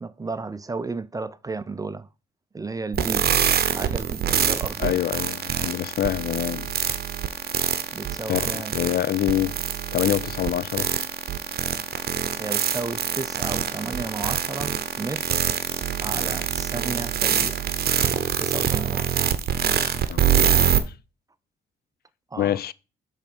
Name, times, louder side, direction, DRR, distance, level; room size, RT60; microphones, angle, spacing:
voice 1, 0.0-2.1 2.5-3.3 3.7-5.0 7.9-8.7 12.4-15.4 16.0-17.6 18.4-19.1 22.3-22.6, right 3 dB, 15° right, 0.4 m, -33 dB
sound 1, 2.9-20.8, right 9 dB, 50° right, 0.8 m, -25 dB
voice 2, 4.8-6.7 8.3-9.6 9.9-10.9 20.1-20.7 22.4-22.7, left 12 dB, 50° left, 0.4 m, -26 dB
7.2 x 3.4 x 5.2 m
cardioid pair, 90°, 20 cm